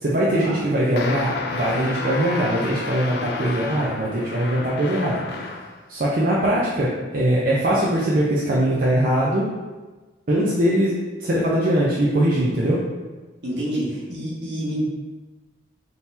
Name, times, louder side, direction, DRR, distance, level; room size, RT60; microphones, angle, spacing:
voice 1, 0.0-5.2 5.9-9.5 10.3-10.9 11.2-12.8, right 1 dB, 50° right, -6 dB, 0.6 m, -21 dB
sound 1, 1.0-5.8, left 3 dB, 60° left, 0.4 m, -31 dB
voice 2, 13.4-14.8, equal, 65° right, -6 dB, 1.3 m, -28 dB
3.8 x 2.9 x 4.2 m, 1.3 s
head